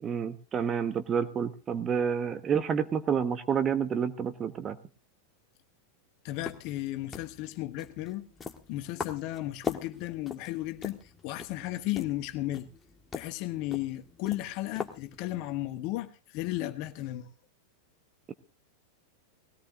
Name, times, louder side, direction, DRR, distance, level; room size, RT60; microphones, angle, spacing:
voice 1, 0.0-4.8, right 7 dB, 25° right, 1.1 m, -29 dB
voice 2, 6.2-8.2 8.7-11.0 11.2-12.7 13.1-17.3, left 16 dB, 45° left, 1.2 m, -34 dB
sound 1, 6.3-15.5, left 5 dB, 15° left, 1.5 m, -42 dB
20.5 x 17.0 x 2.6 m
figure-of-eight pair, 90°, 0 cm